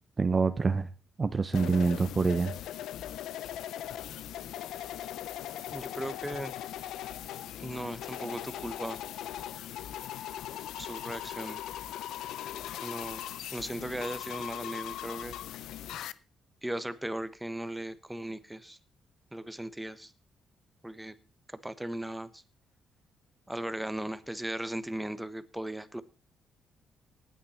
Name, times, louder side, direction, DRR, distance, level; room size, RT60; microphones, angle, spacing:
voice 1, 0.2-0.9 1.2-2.5, right 4 dB, 35° right, 12 dB, 0.8 m, -26 dB
sound 1, 1.5-16.1, left 12 dB, 80° left, 0.6 m, -39 dB
voice 2, 5.7-6.5 7.6-9.0 10.8-11.6 12.8-13.2 13.5-15.4 16.6-18.8 19.3-20.1 20.8-21.1 21.5-22.4 23.5-26.0, right 1 dB, 5° right, 13 dB, 1.3 m, -37 dB
18.5 x 9.3 x 4.4 m, 0.33 s
cardioid pair, 90°, 0 cm